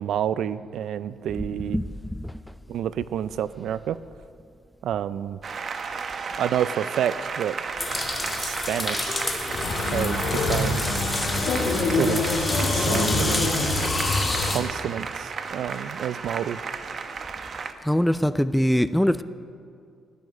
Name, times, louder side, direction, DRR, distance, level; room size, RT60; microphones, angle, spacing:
voice 1, 0.0-1.8 2.7-4.0 4.8-5.4 6.4-7.6 8.4-9.2 9.9-10.8 11.9-12.3 12.7-13.5 14.5-16.6, right 10 dB, 75° right, 16 dB, 0.4 m, -29 dB
voice 2, 1.4-2.4 17.8-19.2, equal, 5° left, 14 dB, 0.5 m, -23 dB
Applause, 5.4-17.7, right 5 dB, 50° right, 1.0 m, -34 dB
sound 1, 7.8-14.6, left 2 dB, 25° left, 2.2 m, -29 dB
sound 2, 9.5-14.5, left 3 dB, 80° left, 2.6 m, -26 dB
15.5 x 11.5 x 6.4 m, 2.3 s
cardioid pair, 90°, 0 cm